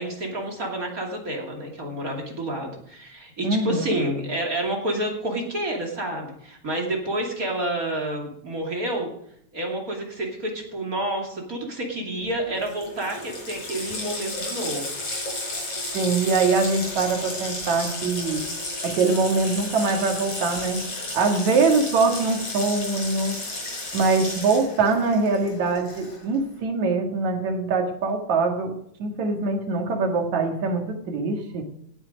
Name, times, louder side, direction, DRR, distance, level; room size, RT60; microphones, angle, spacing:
voice 1, 0.0-9.1 9.5-14.9, right 1 dB, 30° right, 0 dB, 2.8 m, -29 dB
voice 2, 3.4-4.0 15.9-18.4 18.8-23.4 23.9-28.7 29.0-31.6, right 4 dB, 65° right, 3 dB, 3.1 m, -23 dB
Water tap faucet, 12.3-12.4 12.6-26.4, left 2 dB, 50° left, 6.5 m, -33 dB
17.5 x 9.2 x 5.1 m, 0.70 s
omnidirectional pair, 3.6 m